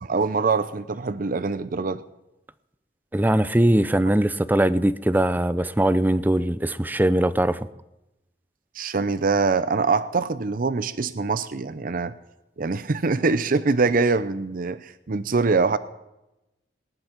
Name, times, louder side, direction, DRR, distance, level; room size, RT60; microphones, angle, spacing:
voice 1, 0.0-2.0 8.8-12.1 12.6-15.8, right 4 dB, 50° right, 0.6 m, -24 dB
voice 2, 3.1-7.7, right 1 dB, 10° right, 0.5 m, -21 dB
19.0 x 10.5 x 5.9 m
head